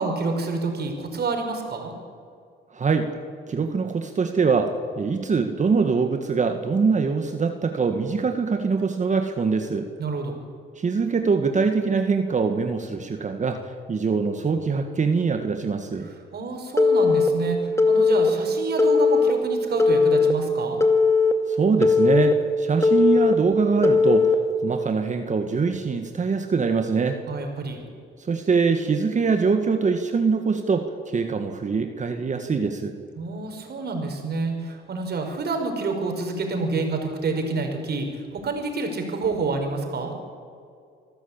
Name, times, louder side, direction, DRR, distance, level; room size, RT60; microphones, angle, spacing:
voice 1, 0.0-1.9 10.0-10.4 16.3-20.8 27.3-27.8 33.2-40.1, right 3 dB, 55° right, 4 dB, 5.1 m, -28 dB
voice 2, 2.7-3.1 3.5-9.9 10.8-16.1 21.5-27.2 28.3-32.9, right 5 dB, 40° right, 6 dB, 1.7 m, -23 dB
Telephone, 16.8-17.3 17.8-18.3 18.8-19.3 19.8-20.3 20.8-21.3 21.8-22.3 22.8-23.3 23.8-24.3, left 4 dB, 15° left, 2.0 m, -18 dB
26.0 x 13.5 x 8.7 m, 2.3 s
cardioid pair, 90°, 20 cm